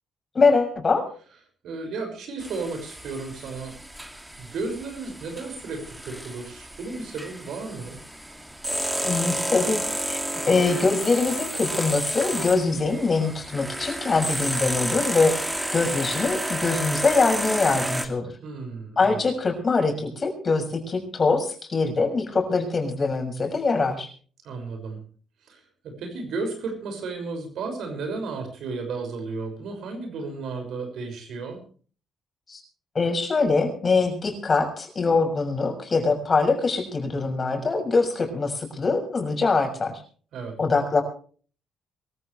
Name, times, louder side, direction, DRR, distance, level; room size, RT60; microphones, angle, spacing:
voice 1, 0.3-1.1 9.0-9.8 10.1-10.2 10.5-18.3 19.0-24.1 32.5-32.6 32.9-40.0 40.6-41.0, left 4 dB, 35° left, 4 dB, 6.5 m, -23 dB
voice 2, 1.6-3.7 4.4-8.0 18.4-19.2 24.4-25.0 25.5-31.6 40.3-40.6, right 3 dB, 75° right, 5 dB, 6.1 m, -33 dB
sound 1, 2.4-18.1, right 1 dB, 10° right, 2.5 m, -31 dB
24.0 x 14.5 x 3.3 m, 0.42 s
cardioid pair, 80°, 0 cm